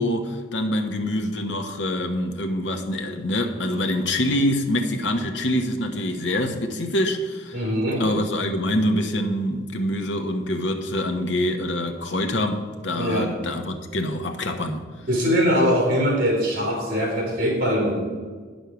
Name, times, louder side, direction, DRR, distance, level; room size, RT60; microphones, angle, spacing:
voice 1, 0.0-7.7 8.0-14.8, left 1 dB, 75° left, 6 dB, 1.1 m, -25 dB
voice 2, 7.5-8.1 12.9-13.3 15.1-18.0, equal, 50° right, 0 dB, 3.3 m, -22 dB
9.0 x 6.4 x 7.0 m, 1.5 s
head